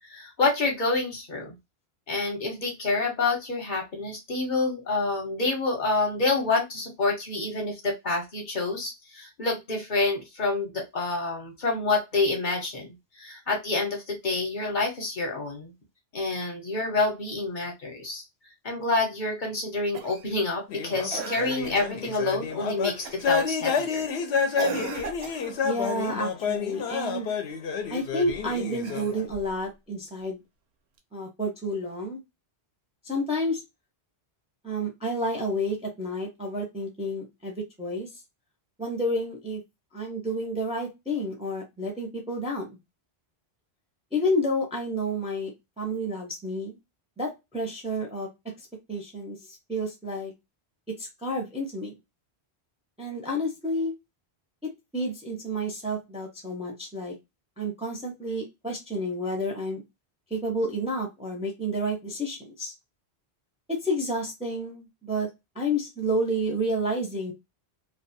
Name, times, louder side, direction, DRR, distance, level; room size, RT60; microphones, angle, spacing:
voice 1, 0.1-1.6 2.1-12.9 13.2-15.7 16.1-18.2 18.6-24.1, left 3 dB, 50° left, 2 dB, 0.9 m, -28 dB
Cough, 19.9-20.3 21.1-21.9 23.1-23.4 24.5-25.6 28.7-29.5 31.0-31.1, right 7 dB, 80° right, 0.9 m, -36 dB
sound 1, 20.7-29.3, left 6 dB, 80° left, 0.8 m, -29 dB
voice 2, 25.6-27.3 27.9-30.4 31.1-32.2 33.0-33.6 34.6-38.1 38.8-39.6 39.9-42.8 44.1-46.8 47.2-48.3 48.9-50.3 51.0-51.9 53.0-53.9 54.6-57.1 57.6-59.8 60.3-62.7 63.7-65.3 65.6-67.3, equal, 10° right, 0 dB, 0.5 m, -30 dB
2.4 x 2.3 x 2.6 m, 0.22 s
omnidirectional pair, 1.1 m